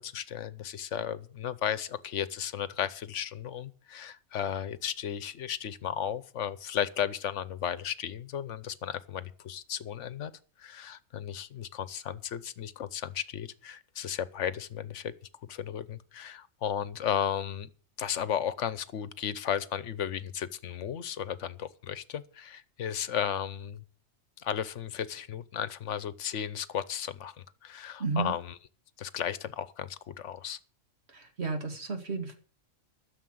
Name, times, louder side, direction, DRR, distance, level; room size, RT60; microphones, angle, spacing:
voice 1, 0.0-10.3 10.6-15.1 15.5-17.7 18.0-23.8 24.4-27.4 27.6-28.5 29.0-30.6, left 9 dB, 75° left, 1.1 m, -34 dB
voice 2, 28.0-28.3 31.1-32.3, right 4 dB, 60° right, 2.5 m, -32 dB
13.0 x 7.0 x 7.8 m
omnidirectional pair, 1.3 m